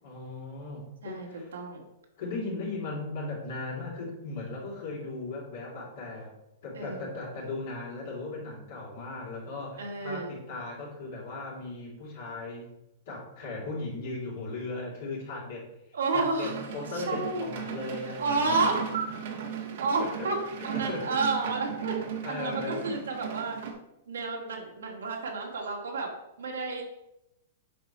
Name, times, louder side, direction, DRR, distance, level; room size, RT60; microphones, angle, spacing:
voice 1, 0.0-1.5 2.2-6.3 6.6-12.7 13.1-15.7 16.1-18.7 20.0-20.3 20.7-21.2 22.2-22.9, left 3 dB, 65° left, -4 dB, 3.3 m, -37 dB
voice 2, 1.0-1.8 6.8-7.1 9.8-10.3 15.9-16.6 16.9-17.5 18.2-19.1 19.8-21.9 22.3-23.6 24.1-26.1 26.4-26.8, right 3 dB, 80° right, 0 dB, 2.1 m, -30 dB
sound 1, 16.4-23.7, right 8 dB, 65° right, 1.4 m, -37 dB
8.2 x 5.4 x 4.4 m, 0.88 s
hypercardioid pair, 115°, 0 cm